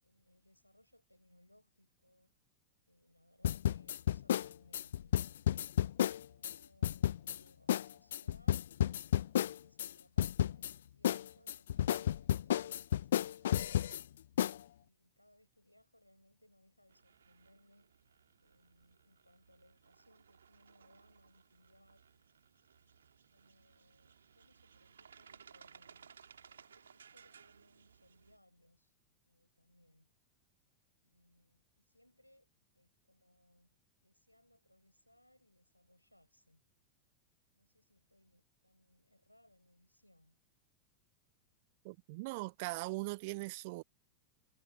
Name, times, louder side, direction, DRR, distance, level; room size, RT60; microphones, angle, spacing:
voice 1, 0.0-2.3 2.8-5.2 6.2-8.7 9.3-14.1 14.7-17.9 18.4-22.0 23.3-26.2 26.5-28.9 29.3-30.1 31.0-32.5 32.7-36.6 37.5-40.4, left 1 dB, 90° left, 7.8 m, -68 dB
sound 1, 3.4-6.5 6.8-7.4 7.7-7.8 8.1-9.9 10.2-10.7 11.0-14.0 14.4-14.6, left 11 dB, 60° left, 0.4 m, -31 dB
sound 2, 16.9-28.4, right 7 dB, 70° right, 2.5 m, -62 dB
voice 2, 41.8-43.8, right 25 dB, 50° right, 0.4 m, -40 dB
figure-of-eight pair, 90°, 0 cm